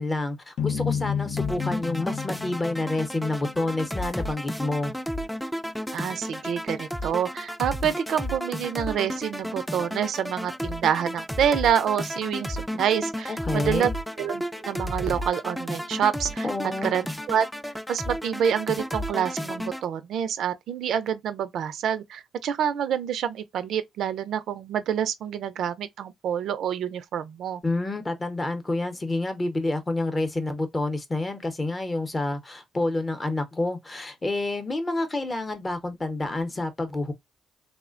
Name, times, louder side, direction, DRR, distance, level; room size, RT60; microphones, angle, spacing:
voice 1, 0.0-4.9 13.3-13.9 16.4-17.0 27.6-37.1, left 2 dB, 25° left, 0.7 m, -28 dB
sound 1, 0.6-3.8, left 7 dB, 75° left, 0.6 m, -31 dB
sound 2, 1.4-19.8, equal, 5° left, 0.3 m, -33 dB
voice 2, 5.9-13.9 14.2-16.5 16.8-17.5 17.9-27.6, right 8 dB, 75° right, 0.4 m, -27 dB
3.1 x 2.1 x 2.4 m
cardioid pair, 90°, 0 cm